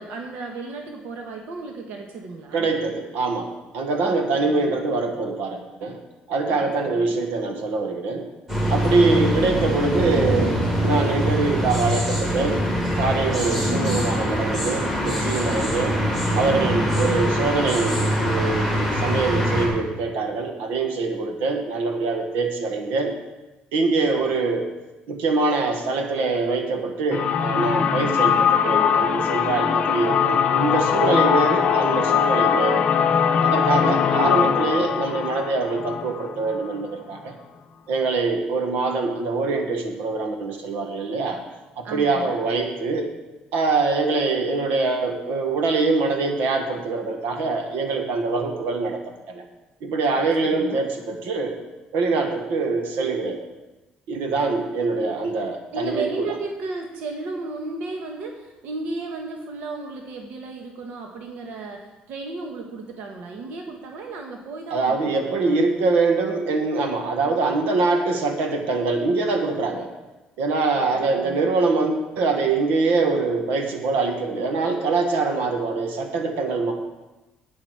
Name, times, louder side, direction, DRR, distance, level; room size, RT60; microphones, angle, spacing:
voice 1, 0.0-2.7 4.0-4.8 6.5-7.2 8.9-9.3 33.6-34.1 41.8-42.4 50.4-50.8 55.7-65.6 70.9-71.5, right 3 dB, 65° right, 2 dB, 1.4 m, -34 dB
voice 2, 2.5-3.5 3.7-6.0 6.3-8.3 8.7-12.6 13.0-16.0 16.3-23.1 23.7-24.7 25.1-33.0 33.4-37.3 37.9-41.4 41.7-43.1 43.5-49.0 49.3-49.4 49.8-51.5 51.9-53.4 54.1-56.3 64.7-69.9 70.4-76.7, right 3 dB, 80° right, 4 dB, 1.5 m, -24 dB
sound 1, 8.5-19.7, equal, 15° right, 2.9 m, -23 dB
sound 2, 27.1-36.8, left 8 dB, 40° left, 0.7 m, -21 dB
11.5 x 8.7 x 4.8 m, 1.1 s
cardioid pair, 175°, 3 cm